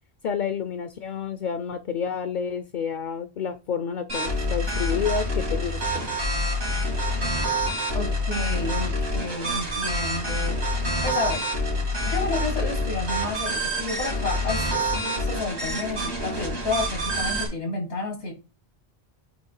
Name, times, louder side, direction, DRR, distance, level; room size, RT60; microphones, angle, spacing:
voice 1, 0.2-6.1, left 7 dB, 55° left, 10 dB, 0.7 m, -29 dB
sound 1, 4.1-17.5, equal, 80° right, 2.6 m, -27 dB
voice 2, 7.9-10.6 11.0-11.5 12.0-18.3, left 3 dB, 90° left, 3 dB, 2.4 m, -31 dB
8.4 x 3.0 x 4.7 m, 0.29 s
omnidirectional pair, 1.1 m